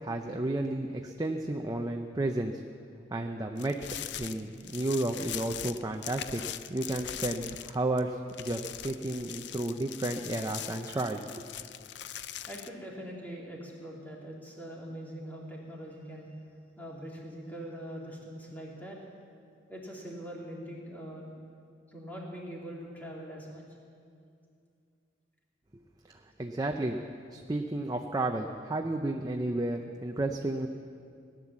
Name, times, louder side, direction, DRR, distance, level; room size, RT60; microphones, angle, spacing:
voice 1, 0.0-2.6 3.1-3.8 4.2-6.4 6.7-11.4 26.1-30.7, right 2 dB, 20° right, 4 dB, 0.5 m, -32 dB
sound 1, 3.6-8.0 8.3-12.7, left 11 dB, 65° left, 0.5 m, -41 dB
voice 2, 12.5-16.3 16.8-19.0 19.7-21.3 21.9-23.6, equal, 10° left, -3 dB, 2.6 m, -42 dB
17.5 x 10.5 x 7.2 m, 2.4 s
head